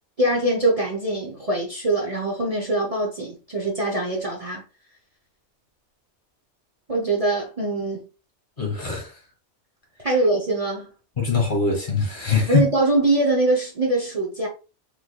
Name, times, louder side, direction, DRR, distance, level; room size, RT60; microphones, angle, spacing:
voice 1, 0.2-4.6 6.9-8.0 10.0-10.9 12.5-14.5, right 2 dB, 35° right, 0.8 m, -23 dB
voice 2, 8.6-9.1 11.2-12.7, left 4 dB, 45° left, 1.5 m, -22 dB
3.6 x 3.3 x 2.2 m
omnidirectional pair, 1.2 m